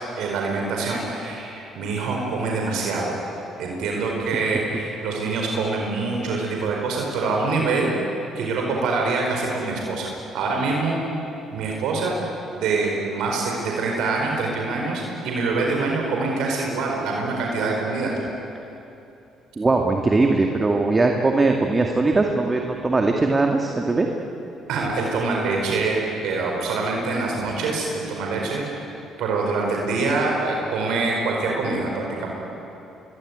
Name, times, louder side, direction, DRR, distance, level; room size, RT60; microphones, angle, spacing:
voice 1, 0.2-3.1 3.6-7.9 8.3-10.1 10.3-11.0 11.5-12.1 12.5-18.1 24.7-28.6 29.2-32.3, right 3 dB, 75° right, 0 dB, 4.8 m, -25 dB
voice 2, 19.6-24.1 27.4-27.5, right 3 dB, 30° right, 2 dB, 2.2 m, -20 dB
25.0 x 22.0 x 9.5 m, 2.8 s
supercardioid pair, 65°, 0 cm